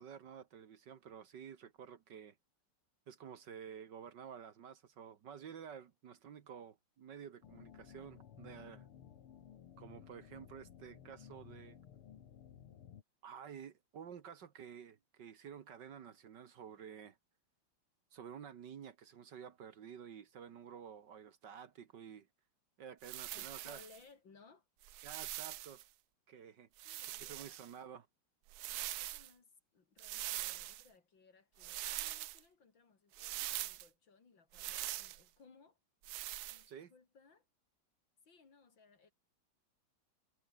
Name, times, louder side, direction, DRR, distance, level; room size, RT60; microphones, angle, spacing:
voice 1, 0.0-2.4 3.1-8.9 9.8-11.8 13.2-17.2 18.1-22.3 22.8-23.8 25.0-25.8 26.3-28.1 36.7-36.9, right 8 dB, 60° right, 1.8 m, -51 dB
sound 1, 7.4-13.0, left 9 dB, 90° left, 2.5 m, -56 dB
sound 2, 23.0-24.0 24.8-25.8 26.8-27.7 28.5-29.3 30.0-30.9 31.6-32.4 33.1-33.9 34.5-35.2 36.0-36.6, right 15 dB, 85° right, 0.8 m, -43 dB
voice 2, 23.3-24.7 26.8-27.9 28.7-35.8 36.4-37.5 38.2-39.1, left 5 dB, 60° left, 3.7 m, -64 dB
omnidirectional pair, 2.3 m